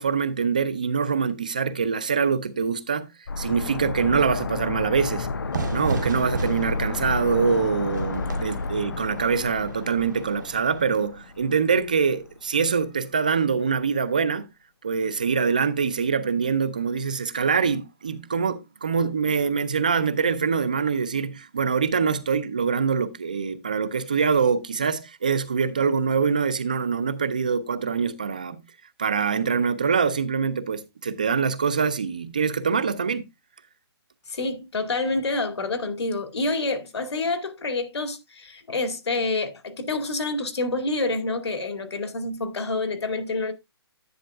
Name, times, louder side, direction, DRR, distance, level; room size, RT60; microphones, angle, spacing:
voice 1, 0.0-3.1 3.4-5.3 5.7-14.5 14.8-28.6 29.0-33.2, right 5 dB, 20° right, 0.4 m, -24 dB
sound 1, 3.3-12.0 12.3-12.4, left 4 dB, 55° left, 0.6 m, -31 dB
Fire / Fireworks, 5.5-11.1, right 4 dB, 45° right, 0.8 m, -34 dB
voice 2, 34.3-43.5, left 2 dB, 80° left, 2.1 m, -27 dB
10.0 x 8.9 x 2.3 m
hypercardioid pair, 180°, 14 cm